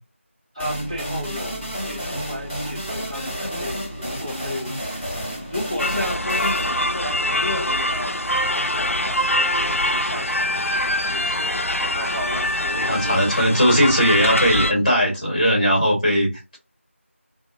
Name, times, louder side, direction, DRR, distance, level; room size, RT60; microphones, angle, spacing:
voice 1, 0.5-5.2 5.5-8.2 8.5-10.7 11.1-13.5 14.2-14.5, left 1 dB, 30° right, 0.6 m, -33 dB
sound 1, 0.6-8.0, equal, 10° right, 1.1 m, -31 dB
sound 2, 5.8-14.7, left 1 dB, 80° left, 0.4 m, -24 dB
voice 2, 12.7-16.6, equal, 35° left, 1.2 m, -19 dB
3.2 x 2.2 x 2.4 m
figure-of-eight pair, 175°, 7 cm